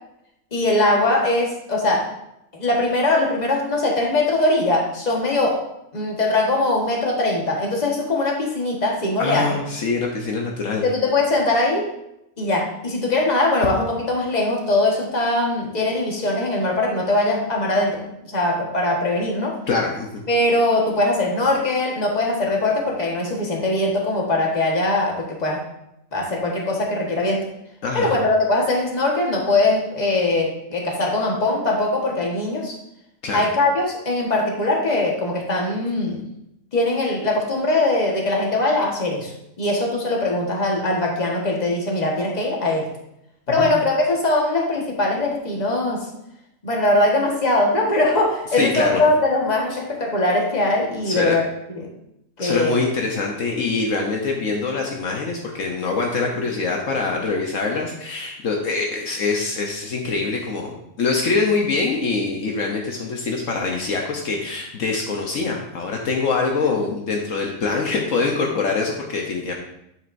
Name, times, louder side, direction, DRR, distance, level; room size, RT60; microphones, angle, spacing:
voice 1, 0.5-2.1 2.5-5.6 5.9-9.6 10.8-11.9 12.4-19.6 20.3-25.6 26.1-27.4 27.9-32.8 33.3-36.2 36.7-39.3 39.6-42.9 43.5-46.1 46.6-51.9 52.4-52.8, left 2 dB, 30° left, -1 dB, 1.6 m, -21 dB
voice 2, 9.2-10.8 19.7-20.2 27.8-28.2 33.2-33.5 43.5-43.7 48.5-49.0 51.1-51.3 52.4-69.5, left 4 dB, 70° left, 0 dB, 1.3 m, -24 dB
9.2 x 7.4 x 2.6 m, 0.82 s
omnidirectional pair, 1.4 m